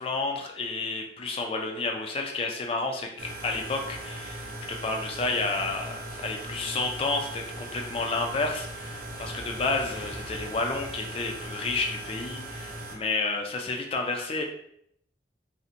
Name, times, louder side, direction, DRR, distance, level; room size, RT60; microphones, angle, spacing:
voice 1, 0.0-14.4, left 3 dB, 30° left, 3 dB, 0.3 m, -31 dB
sound 1, 3.2-13.0, right 1 dB, 50° right, 0.4 m, -39 dB
sound 2, 7.4-12.3, equal, 85° left, 1.0 m, -48 dB
2.7 x 2.1 x 2.4 m, 0.70 s
head